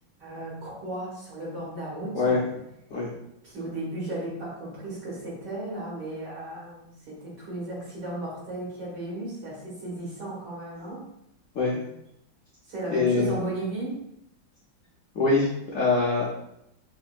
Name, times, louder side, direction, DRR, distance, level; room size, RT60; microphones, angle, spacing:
voice 1, 0.2-2.4 3.4-11.0 12.7-14.0, right 1 dB, 55° right, -6 dB, 2.0 m, -35 dB
voice 2, 12.9-13.3 15.1-15.5 15.7-16.2, left 3 dB, 65° left, -6 dB, 0.8 m, -23 dB
5.2 x 2.7 x 2.3 m, 0.79 s
omnidirectional pair, 2.3 m